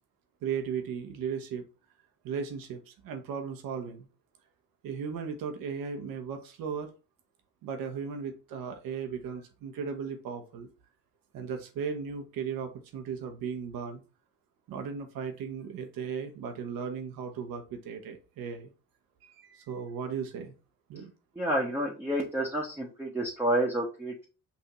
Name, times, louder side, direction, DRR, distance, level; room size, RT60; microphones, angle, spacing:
voice 1, 0.4-1.6 2.2-4.1 4.8-6.9 7.6-10.7 11.3-14.0 14.7-18.7 19.2-20.5 20.9-21.1, right 6 dB, 70° right, 5 dB, 1.0 m, -36 dB
voice 2, 21.4-24.2, right 1 dB, 5° right, -3 dB, 1.0 m, -29 dB
5.7 x 2.7 x 3.0 m, 0.33 s
hypercardioid pair, 55°, 36 cm